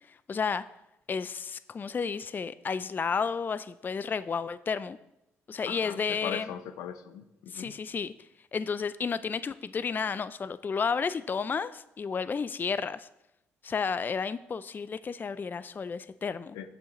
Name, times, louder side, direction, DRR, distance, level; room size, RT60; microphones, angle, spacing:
voice 1, 0.0-0.6 1.1-5.0 5.5-6.5 7.5-13.1 13.6-16.6, left 5 dB, 35° left, 15 dB, 0.3 m, -32 dB
voice 2, 5.7-7.7 16.5-16.7, left 9 dB, 80° left, 10 dB, 0.6 m, -39 dB
9.2 x 7.7 x 3.0 m, 0.89 s
supercardioid pair, 55°, 6 cm